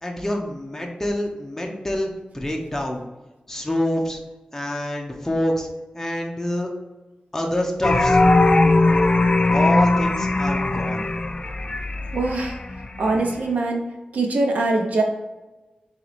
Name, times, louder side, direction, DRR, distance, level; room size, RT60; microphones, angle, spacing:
voice 1, 0.0-3.0 3.5-4.2 4.5-5.7 5.9-6.7 7.3-8.2 9.5-11.1, left 1 dB, 15° left, 1 dB, 0.7 m, -26 dB
sound 1, 7.8-13.4, left 2 dB, 35° left, 0.3 m, -20 dB
voice 2, 12.1-12.6 13.0-13.8 14.1-15.0, right 2 dB, 85° right, 1 dB, 0.6 m, -22 dB
3.8 x 3.1 x 3.2 m, 1.1 s
wide cardioid pair, 90°, 3 cm